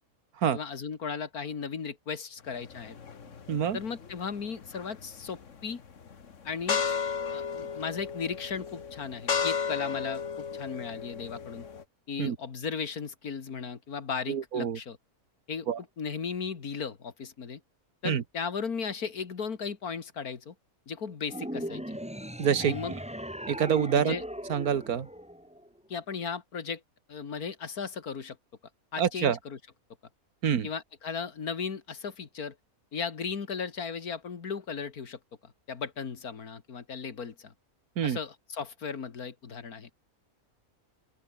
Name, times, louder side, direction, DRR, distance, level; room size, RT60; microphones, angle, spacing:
voice 1, 0.5-3.0 3.7-5.8 6.4-6.8 7.3-11.7 12.1-15.0 15.5-15.7 16.0-17.6 18.0-20.5 20.9-22.0 22.6-23.0 24.0-24.2 25.9-26.8 27.1-28.4 28.9-29.6 30.6-32.6 32.9-37.5 38.0-39.9, left 6 dB, 80° left, 2.4 m, -36 dB
sound 1, 2.5-11.8, left 6 dB, 55° left, 1.8 m, -34 dB
voice 2, 3.5-3.8 12.2-12.4 14.3-14.8 15.7-15.8 18.0-18.2 22.4-22.8 23.5-24.2 24.5-25.1 29.0-29.4 30.4-30.7 38.0-38.2, right 8 dB, 80° right, 1.8 m, -26 dB
sound 2, 21.3-25.8, equal, 5° right, 3.9 m, -39 dB
open air
omnidirectional pair, 1.5 m